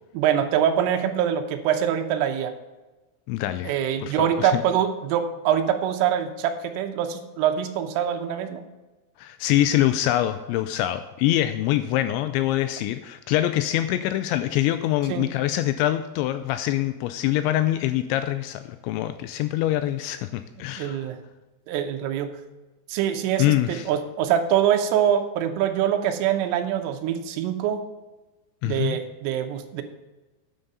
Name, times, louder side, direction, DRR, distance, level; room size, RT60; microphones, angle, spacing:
voice 1, 0.2-2.6 3.7-8.7 15.1-15.3 20.8-21.2 21.7-22.4 22.9-27.8 28.7-29.8, right 9 dB, 80° right, 5 dB, 3.4 m, -24 dB
voice 2, 3.3-4.6 9.2-21.1 23.4-23.9 28.6-29.0, left 13 dB, 85° left, 11 dB, 2.6 m, -24 dB
9.6 x 7.9 x 5.4 m, 1.2 s
omnidirectional pair, 5.7 m